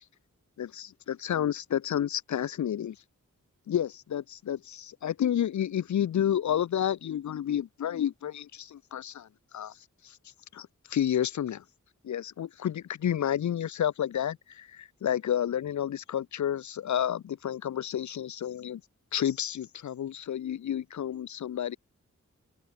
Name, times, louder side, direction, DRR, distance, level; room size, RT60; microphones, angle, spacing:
voice 1, 0.6-3.0 3.7-9.3 9.5-9.7 10.0-10.2 10.5-11.6 12.0-18.8 19.1-21.8, left 10 dB, 65° left, 0.5 m, -30 dB
wide cardioid pair, 70°, 31 cm